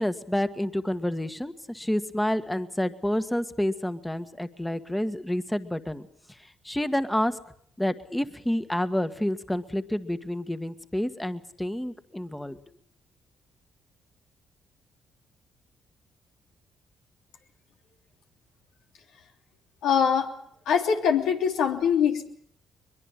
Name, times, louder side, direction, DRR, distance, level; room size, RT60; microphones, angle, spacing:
voice 1, 0.0-6.0 6.6-7.4 7.8-12.6, left 1 dB, 10° left, 10 dB, 1.6 m, -29 dB
voice 2, 19.8-20.3 20.7-22.3, left 7 dB, 85° left, 3 dB, 3.2 m, -23 dB
22.5 x 22.5 x 7.4 m, 0.64 s
cardioid pair, 90°, 0 cm